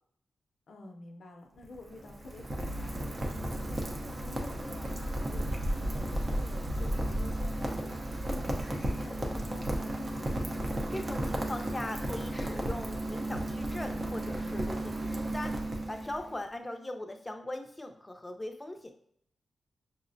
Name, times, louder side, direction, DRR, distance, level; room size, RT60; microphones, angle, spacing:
voice 1, 0.7-10.6, left 2 dB, 70° left, 2 dB, 0.5 m, -49 dB
Rain, 1.5-16.4, right 1 dB, 40° right, 0.7 m, -34 dB
sound 1, 2.6-6.1, equal, 10° right, 0.8 m, -46 dB
voice 2, 10.9-15.5 15.9-18.9, left 1 dB, 20° left, 5 dB, 0.6 m, -40 dB
6.0 x 2.0 x 2.6 m, 0.67 s
cardioid pair, 70°, 0 cm